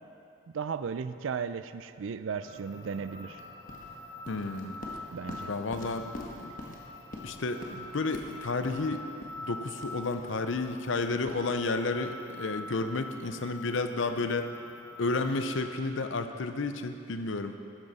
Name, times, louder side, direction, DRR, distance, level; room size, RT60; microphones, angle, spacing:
voice 1, 0.5-3.4 5.1-5.5, right 6 dB, 75° right, 13 dB, 0.4 m, -35 dB
sound 1, 2.4-15.6, left 1 dB, 85° left, 2.9 m, -45 dB
sound 2, 3.4-12.2, left 1 dB, 40° left, 1.3 m, -46 dB
voice 2, 4.3-4.8 5.5-6.1 6.4-6.5 7.2-9.1 9.4-14.5 15.0-17.6, left 3 dB, 70° left, 8 dB, 0.6 m, -31 dB
12.5 x 10.5 x 4.1 m, 2.6 s
head